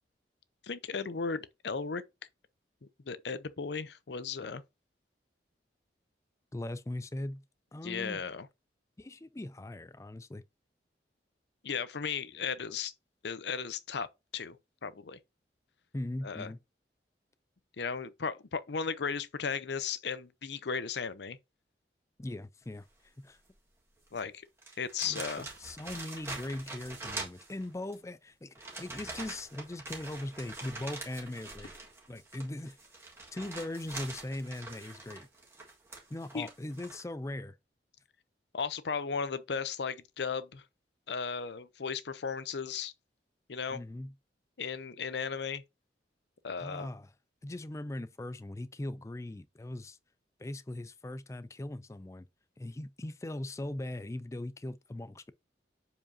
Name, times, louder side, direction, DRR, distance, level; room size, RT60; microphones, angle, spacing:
voice 1, 0.6-2.0 3.1-4.6 7.8-8.5 11.6-12.9 13.2-14.1 14.3-14.6 14.8-15.2 16.2-16.5 17.8-21.4 24.1-24.4 24.8-25.5 36.3-36.5 38.5-40.6 41.1-42.9 43.5-43.8 44.6-45.6 46.4-46.9, left 5 dB, 70° left, 0.6 m, -35 dB
voice 2, 6.5-7.4 7.7-8.2 9.0-10.4 15.9-16.6 22.2-23.4 25.0-31.7 32.1-32.8 33.3-35.3 36.1-37.6 43.7-44.1 46.6-47.1 47.4-50.0 50.4-52.3 52.6-55.3, left 1 dB, 15° left, 0.4 m, -40 dB
sound 1, 24.1-24.2 24.6-27.9 28.5-37.0, right 3 dB, 15° right, 1.7 m, -44 dB
7.4 x 4.9 x 2.7 m
head